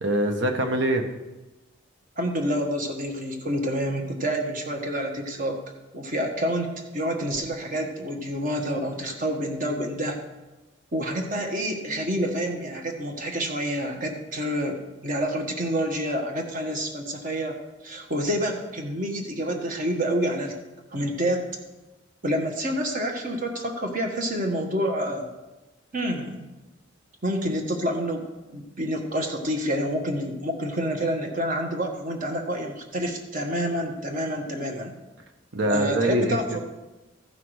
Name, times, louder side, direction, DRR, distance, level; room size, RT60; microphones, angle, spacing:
voice 1, 0.0-1.0 35.5-36.6, right 1 dB, 65° right, 4 dB, 1.2 m, -24 dB
voice 2, 2.2-5.6 5.9-10.2 10.9-17.6 17.8-20.6 20.9-21.5 22.2-25.3 25.9-26.4 27.2-28.3 28.5-35.0 35.7-36.6, equal, 45° right, 2 dB, 1.4 m, -28 dB
14.5 x 5.9 x 4.8 m, 1.1 s
head